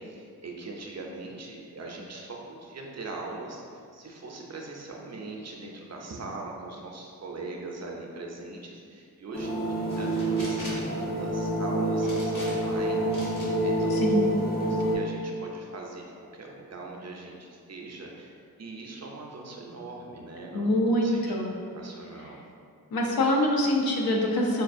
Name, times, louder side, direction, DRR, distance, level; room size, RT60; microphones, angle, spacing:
voice 1, 0.0-13.3 13.6-14.4 14.7-21.4 21.7-22.4, right 3 dB, 50° right, -1 dB, 0.4 m, -41 dB
sound 1, 9.3-14.9, right 1 dB, 30° left, 0.4 m, -27 dB
sound 2, 9.9-10.9 12.0-12.8 13.1-13.5 14.0-14.7, left 1 dB, 60° left, 1.1 m, -43 dB
voice 2, 13.9-14.4 20.5-21.5 22.9-24.6, left 1 dB, 80° left, -1 dB, 0.6 m, -25 dB
4.4 x 2.4 x 2.5 m, 2.3 s
wide cardioid pair, 135°, 35 cm